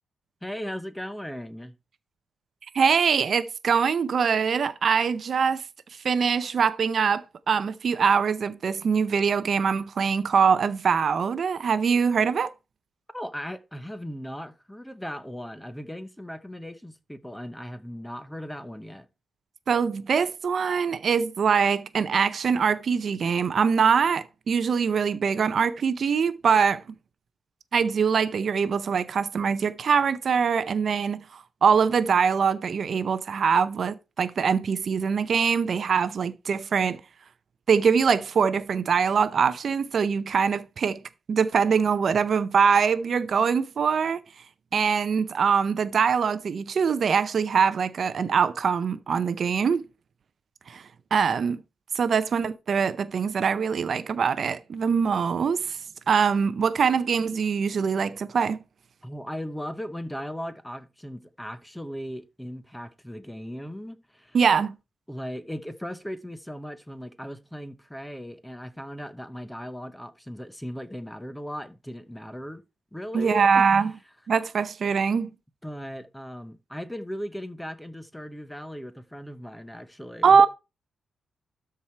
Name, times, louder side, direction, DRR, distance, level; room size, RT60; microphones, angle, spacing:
voice 1, 0.4-1.7 13.1-19.1 59.0-64.4 65.1-72.6 72.9-73.9 75.6-80.4, equal, 5° left, 0.7 m, -37 dB
voice 2, 2.7-5.6 6.0-12.5 19.7-26.8 27.7-37.0 37.7-41.0 41.3-44.2 44.7-49.8 50.7-50.8 51.1-51.6 51.9-55.8 56.1-58.6 64.3-64.7 73.1-73.9 74.3-75.3 80.2-80.5, right 6 dB, 45° right, 0.6 m, -23 dB
13.0 x 4.7 x 4.4 m
wide cardioid pair, 165°, 0 cm